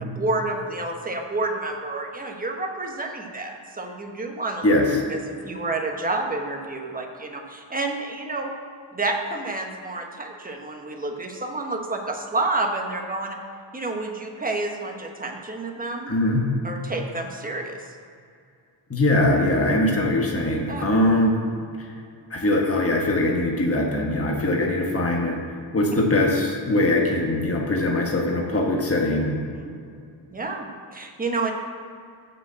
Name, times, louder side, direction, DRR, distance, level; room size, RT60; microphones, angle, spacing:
voice 1, 0.0-4.7 5.1-8.5 8.9-13.4 13.7-16.1 16.6-18.0 20.7-20.8 29.5-29.7 30.3-31.5, right 2 dB, 20° right, 2 dB, 1.2 m, -29 dB
voice 2, 16.1-16.5 18.9-21.3 22.3-25.4 25.7-29.4, left 1 dB, 30° left, 0 dB, 1.4 m, -21 dB
7.3 x 6.5 x 7.5 m, 2.4 s
wide cardioid pair, 95°, 45 cm